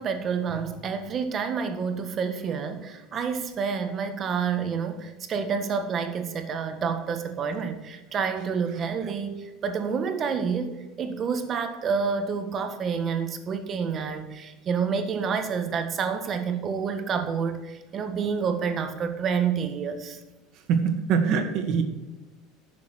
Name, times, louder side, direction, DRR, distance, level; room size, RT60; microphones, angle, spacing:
voice 1, 0.0-20.2, right 6 dB, 30° right, 7 dB, 1.5 m, -28 dB
voice 2, 20.7-21.8, right 6 dB, 55° right, 6 dB, 2.0 m, -23 dB
11.5 x 6.8 x 6.4 m, 1.1 s
cardioid pair, 150°, 0 cm